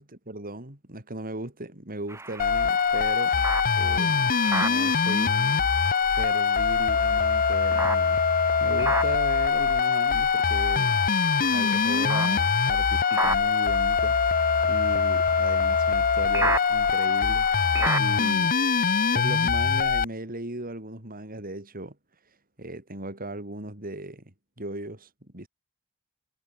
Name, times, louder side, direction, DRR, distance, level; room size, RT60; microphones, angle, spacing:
voice 1, 0.0-3.4 3.7-5.7 6.1-8.2 8.6-11.0 11.4-14.2 14.6-17.5 18.0-18.5 19.1-22.0 22.6-25.5, right 1 dB, 40° right, 6.5 m, -37 dB
sound 1, 2.1-18.3, right 2 dB, 15° right, 2.8 m, -35 dB
sound 2, 2.4-20.0, left 6 dB, 40° left, 0.9 m, -23 dB
head